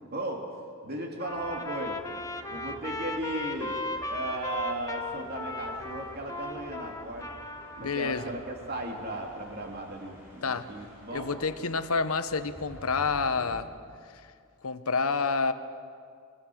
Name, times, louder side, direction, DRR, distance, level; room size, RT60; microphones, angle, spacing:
voice 1, 0.1-0.5 0.8-2.0 2.5-7.3 7.8-11.3, right 1 dB, 45° right, 1 dB, 2.7 m, -36 dB
Trumpet, 1.2-8.3, left 2 dB, 15° left, 1.1 m, -36 dB
sound 1, 1.2-13.6, equal, 10° right, 6.4 m, -51 dB
voice 2, 7.8-8.3 10.4-10.7 11.1-13.7 14.6-15.5, left 4 dB, 80° left, 11 dB, 1.0 m, -28 dB
28.5 x 16.5 x 6.3 m, 2.2 s
head